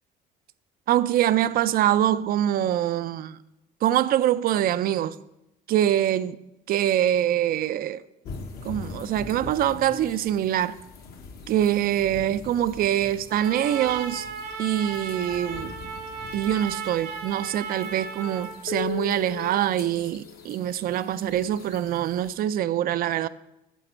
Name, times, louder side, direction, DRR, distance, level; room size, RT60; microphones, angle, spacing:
voice 1, 0.9-3.4 3.8-5.2 5.7-6.4 6.7-8.0 8.6-10.7 11.5-14.3 14.6-15.7 16.3-23.3, right 11 dB, 60° right, 0.4 m, -24 dB
sound 1, 8.2-22.3, left 6 dB, 65° left, 1.2 m, -41 dB
Trumpet, 13.3-18.6, right 4 dB, 80° right, 1.6 m, -36 dB
9.1 x 7.0 x 4.4 m
cardioid pair, 110°, 17 cm